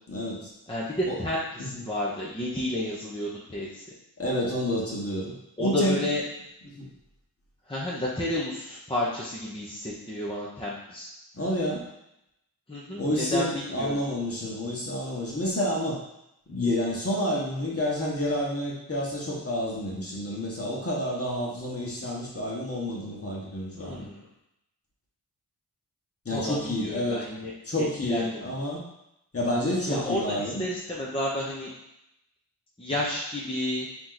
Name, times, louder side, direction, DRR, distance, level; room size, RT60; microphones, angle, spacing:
voice 1, 0.1-0.5 1.1-1.2 1.6-1.8 4.2-5.3 5.6-6.0 6.7-6.9 11.3-11.8 13.0-16.0 16.5-24.1 26.2-27.3 27.6-28.8 29.3-30.7, left 1 dB, 35° left, -4 dB, 1.4 m, -29 dB
voice 2, 0.7-3.8 5.6-6.2 7.7-11.1 12.7-14.0 23.8-24.2 26.3-27.5 28.0-28.4 29.9-31.7 32.8-33.9, left 1 dB, 15° left, -6 dB, 0.8 m, -31 dB
3.9 x 3.1 x 3.9 m, 0.83 s
wide cardioid pair, 65°, 39 cm